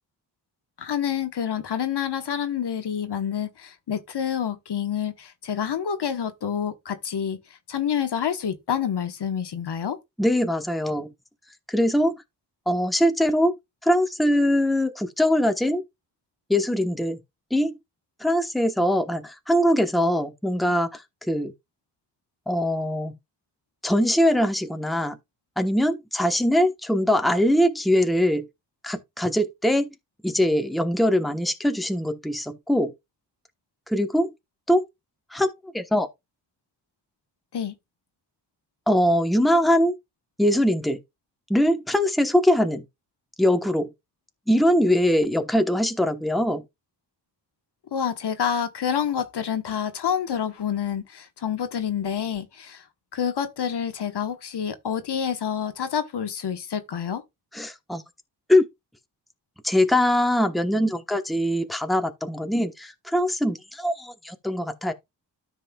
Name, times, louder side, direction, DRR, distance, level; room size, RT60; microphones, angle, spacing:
voice 1, 0.8-7.4 7.7-10.0 37.5-37.7 47.9-52.8 53.1-57.2, left 8 dB, 65° left, 1.2 m, -28 dB
voice 2, 10.2-11.1 11.7-12.1 12.7-13.6 13.8-15.8 16.5-17.2 17.5-17.8 18.2-21.5 22.5-23.2 23.8-25.2 25.6-28.5 28.8-29.9 30.2-32.9 33.9-34.3 34.7-34.9 35.3-35.5 35.7-36.1 38.9-40.0 40.4-41.0 41.5-42.8 43.4-43.9 44.5-46.6 57.5-58.0 58.5-58.6 59.6-64.9, equal, ahead, 1.0 m, -22 dB
13.0 x 5.4 x 2.3 m
wide cardioid pair, 95°, 43 cm